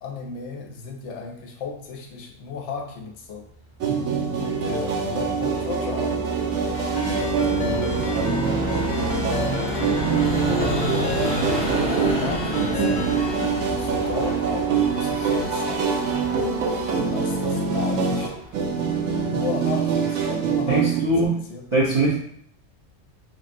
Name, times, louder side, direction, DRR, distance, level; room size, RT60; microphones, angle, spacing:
voice 1, 0.0-3.5 4.2-6.3 7.1-8.8 9.4-11.5 11.9-13.1 13.6-16.0 17.1-18.4 18.7-18.9 19.3-21.7, left 5 dB, 70° left, 2 dB, 0.8 m, -35 dB
sound 1, 3.8-21.2, right 6 dB, 75° right, 0.9 m, -25 dB
Vehicle, 4.6-19.3, equal, 5° right, 0.7 m, -30 dB
Ringtone, 6.7-13.6, left 4 dB, 85° left, 0.4 m, -33 dB
voice 2, 20.7-21.4 21.7-22.2, right 2 dB, 45° right, -6 dB, 0.4 m, -21 dB
3.2 x 2.5 x 2.5 m, 0.65 s
omnidirectional pair, 1.3 m